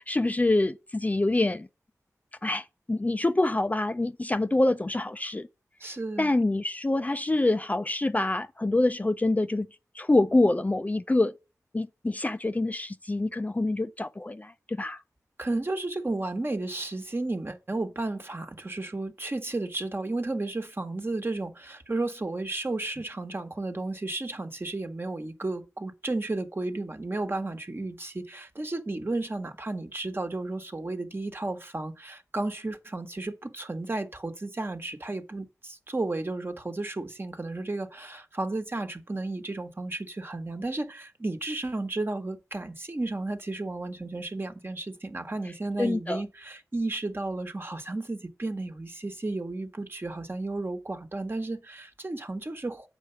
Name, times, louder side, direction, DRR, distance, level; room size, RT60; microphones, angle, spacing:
voice 1, 0.0-1.7 2.4-5.5 6.2-9.7 9.9-11.3 11.7-15.0 45.8-46.2, left 2 dB, 25° left, 0.4 m, -26 dB
voice 2, 5.8-6.3 15.4-52.9, right 2 dB, 40° right, 1.2 m, -33 dB
6.7 x 4.9 x 6.8 m
cardioid pair, 40°, 6 cm